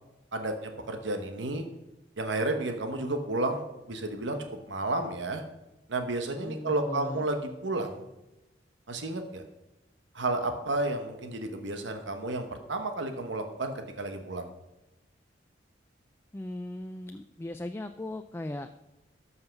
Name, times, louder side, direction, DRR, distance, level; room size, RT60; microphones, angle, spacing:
voice 1, 0.3-1.7 2.2-5.4 5.9-8.0 8.9-9.4 10.1-14.5, right 2 dB, 80° right, 6 dB, 1.1 m, -32 dB
voice 2, 6.4-7.3 16.3-18.7, left 1 dB, 15° left, 7 dB, 0.3 m, -38 dB
13.0 x 5.6 x 5.9 m, 0.98 s
head